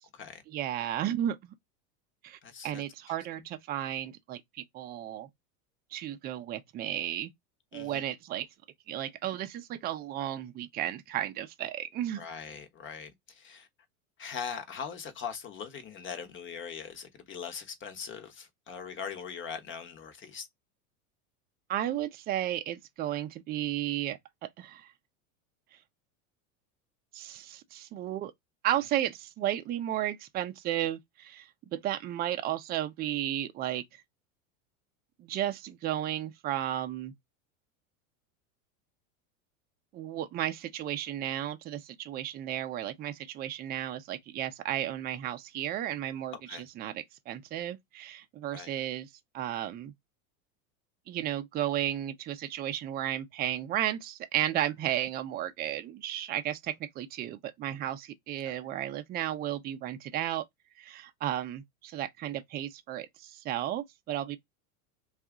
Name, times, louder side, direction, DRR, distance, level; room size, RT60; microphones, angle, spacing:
voice 1, 0.5-1.5 2.2-5.3 5.9-7.3 7.7-8.5 8.9-12.2 21.7-24.2 24.6-24.9 27.1-28.3 28.6-33.8 35.2-37.1 39.9-49.1 49.3-49.9 51.1-60.4 60.8-64.4, right 12 dB, 25° right, 0.4 m, -33 dB
voice 2, 2.4-2.8 7.7-8.0 12.2-13.7 14.2-20.5 46.5-46.6 48.5-48.7 58.4-58.5, left 6 dB, 30° left, 0.9 m, -41 dB
2.7 x 2.4 x 3.5 m
supercardioid pair, 115°, 41 cm